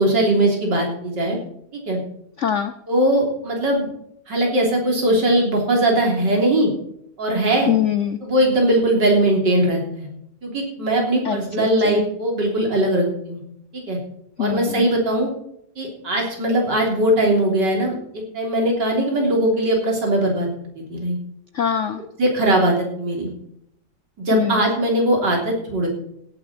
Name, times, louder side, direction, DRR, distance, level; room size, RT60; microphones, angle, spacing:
voice 1, 0.0-1.4 1.7-2.0 2.9-3.9 4.3-6.7 7.2-7.7 8.2-10.1 10.4-13.4 13.7-14.0 14.4-15.3 15.8-17.9 18.3-20.5 20.8-21.2 22.2-23.3 24.2-25.9, right 1 dB, 90° right, 0 dB, 4.1 m, -20 dB
voice 2, 2.4-2.7 7.7-8.2 11.2-12.0 14.4-14.9 21.5-22.0 24.3-24.7, left 9 dB, 60° left, 10 dB, 0.8 m, -23 dB
16.5 x 9.8 x 4.4 m, 0.74 s
omnidirectional pair, 1.8 m